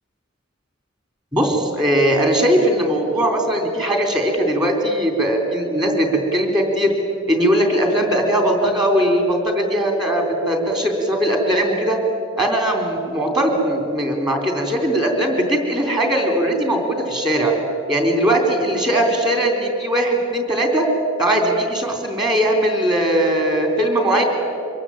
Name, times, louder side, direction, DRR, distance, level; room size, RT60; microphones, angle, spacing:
voice 1, 1.3-6.9 7.3-12.0 12.4-17.5 17.9-20.9 21.2-24.2, right 1 dB, 20° right, 3 dB, 3.6 m, -19 dB
24.5 x 22.0 x 8.7 m, 2.6 s
head